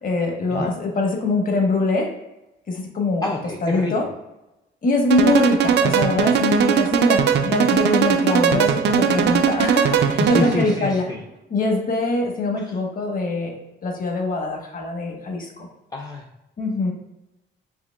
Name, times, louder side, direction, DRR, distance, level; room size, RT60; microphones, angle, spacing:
voice 1, 0.0-2.1 2.7-3.3 3.6-4.0 4.8-11.0 11.5-13.5 13.8-15.5 16.6-16.9, left 2 dB, 45° left, 2 dB, 1.0 m, -23 dB
voice 2, 3.2-3.9 10.2-11.2 12.6-12.8 15.9-16.3, left 2 dB, 20° left, 0 dB, 0.4 m, -27 dB
sound 1, 5.1-10.7, right 7 dB, 60° right, 0.4 m, -19 dB
4.8 x 2.9 x 2.2 m, 0.95 s
cardioid pair, 90°, 20 cm